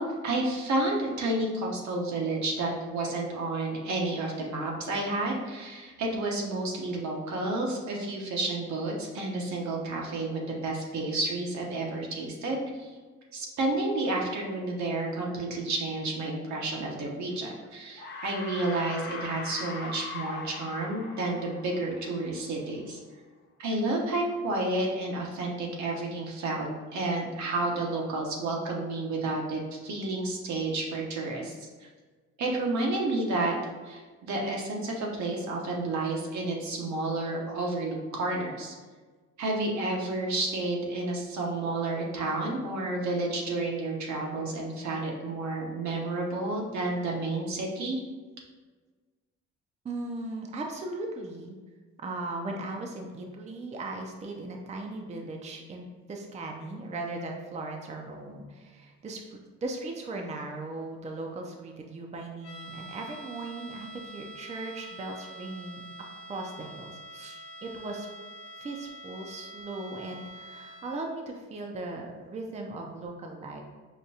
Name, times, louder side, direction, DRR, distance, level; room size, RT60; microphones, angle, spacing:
voice 1, 0.0-12.9 13.3-23.0 23.6-31.7 32.4-33.5 33.8-38.7 39.4-48.0, right 2 dB, 70° right, -1 dB, 0.9 m, -31 dB
sound 1, 17.3-17.7 18.0-22.6, left 3 dB, 35° left, 0.6 m, -40 dB
voice 2, 49.8-51.6 52.0-65.8 66.3-68.1 68.6-73.6, right 2 dB, 25° right, 1 dB, 0.4 m, -38 dB
sound 2, 62.4-71.1, right 1 dB, 90° left, 0.5 m, -46 dB
5.0 x 2.2 x 2.7 m, 1.4 s
cardioid pair, 90°, 30 cm